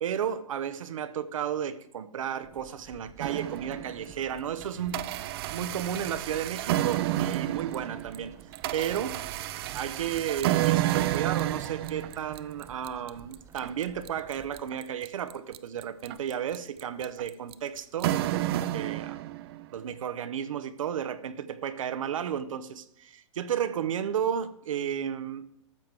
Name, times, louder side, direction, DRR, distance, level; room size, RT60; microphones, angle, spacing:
voice 1, 0.0-5.0 5.5-8.3 8.7-9.2 9.7-19.2 19.7-25.5, right 9 dB, 80° right, 0.9 m, -33 dB
sound 1, 2.4-14.6, right 6 dB, 15° right, 0.8 m, -54 dB
sound 2, 3.2-4.1 4.6-19.7, right 14 dB, 50° right, 0.5 m, -31 dB
13.0 x 7.2 x 4.7 m
hypercardioid pair, 140°, 17 cm